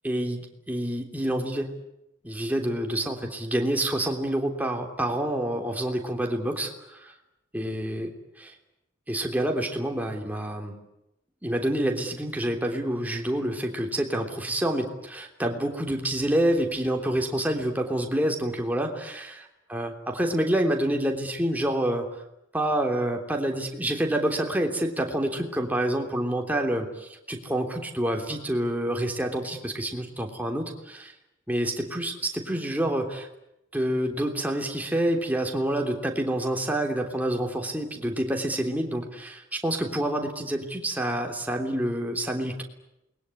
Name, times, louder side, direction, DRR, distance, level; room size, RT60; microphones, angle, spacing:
voice 1, 0.0-1.7 2.2-7.1 7.5-8.1 8.4-8.5 9.1-10.8 11.4-22.1 22.5-31.1 31.5-33.3 33.7-42.6, right 1 dB, 10° right, 2 dB, 3.3 m, -27 dB
28.5 x 21.5 x 9.8 m, 0.88 s
head